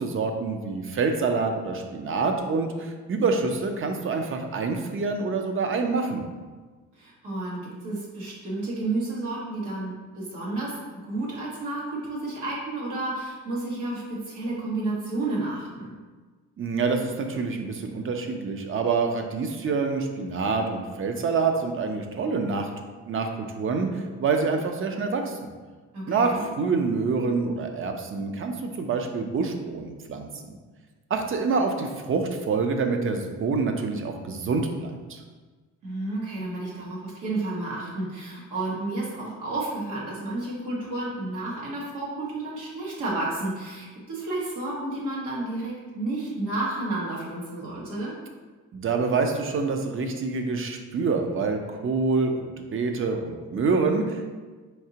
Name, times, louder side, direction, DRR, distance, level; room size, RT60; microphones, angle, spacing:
voice 1, 0.0-6.2 16.6-22.7 23.0-25.4 26.1-30.3 31.1-35.2 48.7-54.3, right 4 dB, 45° right, 4 dB, 0.6 m, -26 dB
voice 2, 7.0-10.7 11.1-15.9 25.9-26.4 35.8-48.1, right 2 dB, 85° right, -5 dB, 1.4 m, -31 dB
4.6 x 2.8 x 2.8 m, 1.4 s
cardioid pair, 90°, 30 cm